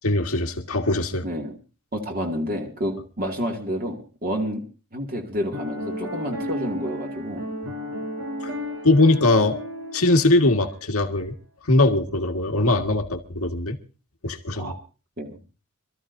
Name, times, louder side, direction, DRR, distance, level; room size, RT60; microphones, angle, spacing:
voice 1, 0.0-1.3 8.4-8.5 8.8-9.6 9.9-11.3 11.6-13.8 14.2-14.7, left 2 dB, 90° left, 1.7 m, -21 dB
voice 2, 1.2-1.5 1.9-4.6 4.9-7.4 14.5-14.8 15.2-15.4, equal, 45° right, 2.3 m, -29 dB
Piano, 5.5-10.8, left 1 dB, 90° right, 5.7 m, -33 dB
26.5 x 13.5 x 2.7 m
head